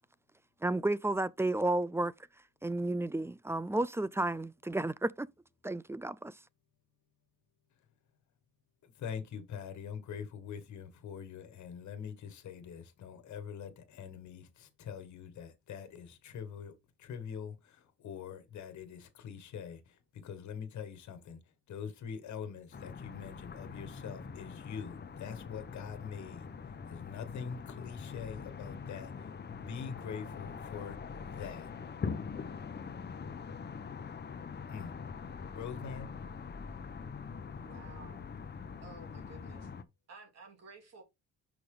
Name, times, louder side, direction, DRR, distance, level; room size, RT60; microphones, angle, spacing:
voice 1, 0.6-2.1 2.6-5.3 5.6-6.3, right 2 dB, 10° right, 0.3 m, -32 dB
voice 2, 8.8-16.7 17.0-21.4 21.7-26.5 26.9-31.0 31.3-31.7 34.7-34.9 35.5-36.1, left 7 dB, 70° left, 1.5 m, -44 dB
sound 1, 22.7-39.8, left 5 dB, 35° left, 0.9 m, -43 dB
voice 3, 37.6-38.3 38.8-39.7 40.1-41.0, right 3 dB, 60° right, 3.1 m, -53 dB
6.0 x 4.7 x 3.7 m
cardioid pair, 90°, 30 cm